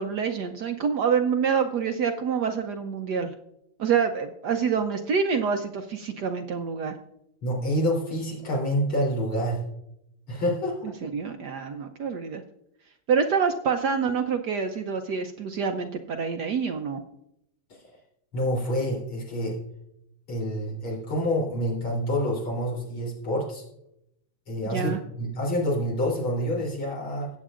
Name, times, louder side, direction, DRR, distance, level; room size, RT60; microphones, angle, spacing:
voice 1, 0.0-3.3 3.8-6.9 11.0-12.4 13.1-17.0 24.6-25.0, right 6 dB, 65° right, 6 dB, 1.0 m, -26 dB
voice 2, 7.4-9.6 10.3-10.9 17.7-17.8 18.3-19.6 20.3-23.6 24.5-27.3, equal, 70° left, -4 dB, 4.4 m, -27 dB
18.0 x 8.3 x 2.5 m, 0.79 s
omnidirectional pair, 2.4 m